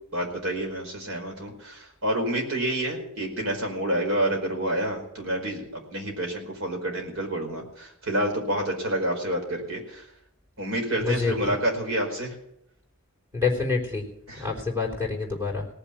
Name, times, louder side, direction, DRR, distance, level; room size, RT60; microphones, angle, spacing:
voice 1, 0.1-10.1 10.6-12.4 14.3-14.6, right 1 dB, 75° right, 1 dB, 4.7 m, -28 dB
voice 2, 11.0-11.5 13.3-14.1 14.4-15.7, left 4 dB, 10° right, -2 dB, 3.9 m, -27 dB
18.5 x 7.0 x 9.2 m, 0.76 s
head